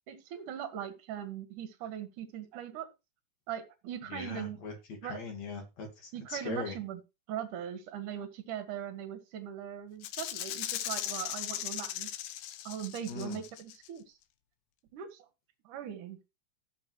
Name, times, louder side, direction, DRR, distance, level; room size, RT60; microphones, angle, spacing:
voice 1, 0.1-2.9 3.5-4.6 5.0-5.2 6.1-7.0 7.3-12.1 12.6-14.1 14.9-15.3 15.6-16.2, right 10 dB, 55° right, 7 dB, 2.7 m, -40 dB
voice 2, 4.1-4.7 5.0-6.7 13.1-13.4, left 4 dB, 50° left, 3 dB, 2.6 m, -40 dB
Rattle (instrument), 10.0-13.9, left 13 dB, 75° left, 2.2 m, -38 dB
18.0 x 7.0 x 3.1 m, 0.26 s
omnidirectional pair, 5.2 m